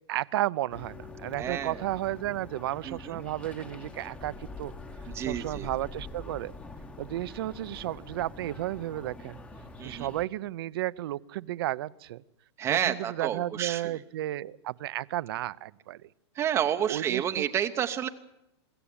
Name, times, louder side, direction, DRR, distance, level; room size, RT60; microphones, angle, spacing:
voice 1, 0.1-4.7 5.2-6.6 7.0-9.4 9.8-12.2 12.7-16.1 16.9-17.4, right 15 dB, 55° right, 0.7 m, -33 dB
sound 1, 0.7-10.3, left 3 dB, 10° left, 1.0 m, -44 dB
voice 2, 1.4-1.8 2.9-3.2 5.1-5.7 9.8-10.1 12.6-14.0 16.3-18.1, right 9 dB, 20° right, 0.7 m, -30 dB
24.0 x 14.5 x 8.7 m
supercardioid pair, 165°, 15 cm